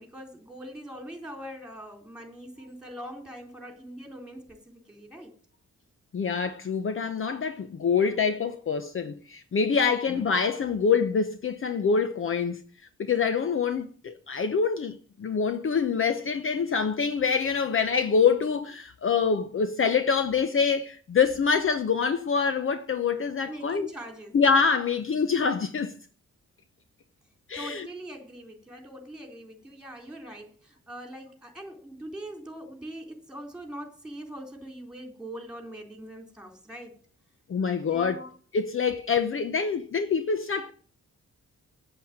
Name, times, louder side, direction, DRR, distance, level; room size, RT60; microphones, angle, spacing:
voice 1, 0.0-5.4 23.5-24.4 27.5-37.0 37.9-38.3, right 1 dB, 5° right, 3.9 m, -42 dB
voice 2, 6.1-12.6 13.0-23.9 24.3-25.9 27.5-27.9 37.5-40.7, left 5 dB, 45° left, 0.8 m, -25 dB
8.3 x 7.8 x 8.8 m
wide cardioid pair, 115°, 29 cm